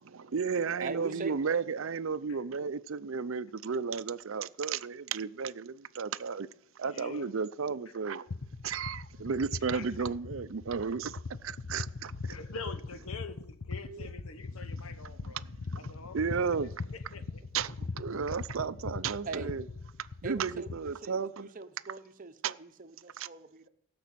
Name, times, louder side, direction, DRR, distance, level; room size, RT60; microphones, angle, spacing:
voice 1, 0.1-6.5 6.8-8.2 8.6-11.2 11.4-12.1 13.9-14.1 15.7-16.7 17.5-19.6 20.2-21.5 22.4-22.5 23.2-23.3, right 5 dB, 65° right, 0.5 m, -33 dB
voice 2, 0.8-1.3 19.2-19.5 20.2-23.7, right 4 dB, 40° right, 0.9 m, -41 dB
voice 3, 6.8-7.4 7.8-8.0 9.7-10.1 12.3-15.4 15.7-17.6 18.3-18.4, left 4 dB, 80° left, 1.2 m, -46 dB
sound 1, 8.3-20.9, left 3 dB, 60° left, 0.7 m, -41 dB
17.0 x 6.1 x 8.5 m
head